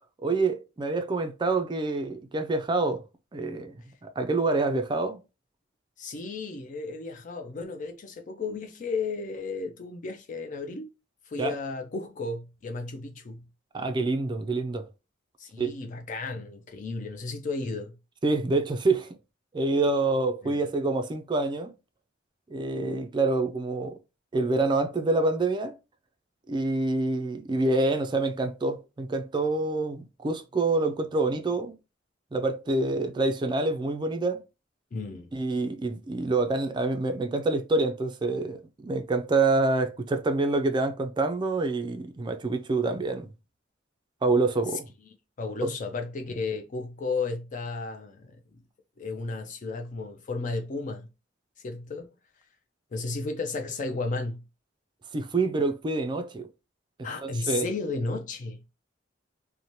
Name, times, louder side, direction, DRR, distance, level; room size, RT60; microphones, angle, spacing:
voice 1, 0.2-3.0 3.3-5.2 11.4-11.5 13.7-14.9 15.6-15.7 18.2-19.2 19.5-21.7 22.5-24.0 24.3-25.8 26.5-31.7 32.3-34.4 35.3-43.3 44.2-44.9 45.6-45.7 55.1-56.5 57.2-57.7, right 3 dB, 25° right, 0.4 m, -27 dB
voice 2, 6.0-10.9 11.3-13.5 15.4-18.0 20.4-20.6 34.9-35.3 45.0-48.6 49.0-51.1 51.6-52.1 52.9-54.4 57.0-58.7, left 3 dB, 40° left, 0.4 m, -34 dB
2.7 x 2.1 x 3.0 m
head